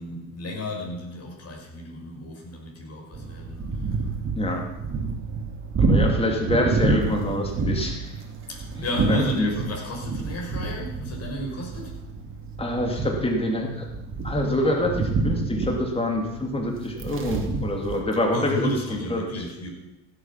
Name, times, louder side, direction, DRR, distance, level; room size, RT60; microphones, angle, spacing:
voice 1, 0.0-3.6 8.5-11.9 18.3-19.7, left 1 dB, 40° left, 1 dB, 5.3 m, -32 dB
sound 1, 3.1-18.0, right 3 dB, 30° right, 2.5 m, -28 dB
voice 2, 5.8-8.2 8.8-9.5 12.6-13.9 14.2-19.2, left 1 dB, 15° left, 1 dB, 2.6 m, -26 dB
16.0 x 8.3 x 5.8 m, 0.94 s
supercardioid pair, 85°, 40 cm